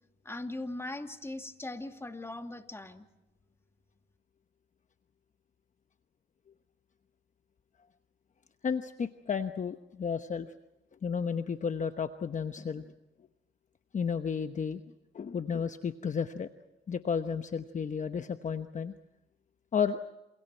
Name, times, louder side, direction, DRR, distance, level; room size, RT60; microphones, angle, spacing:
voice 1, 0.2-3.1, left 2 dB, 10° left, 5 dB, 2.5 m, -39 dB
voice 2, 8.6-10.5 11.0-12.8 13.9-14.8 15.1-16.5 16.9-18.9 19.7-20.0, left 6 dB, 40° left, 8 dB, 1.0 m, -32 dB
28.5 x 28.5 x 4.5 m, 0.98 s
cardioid pair, 90°, 20 cm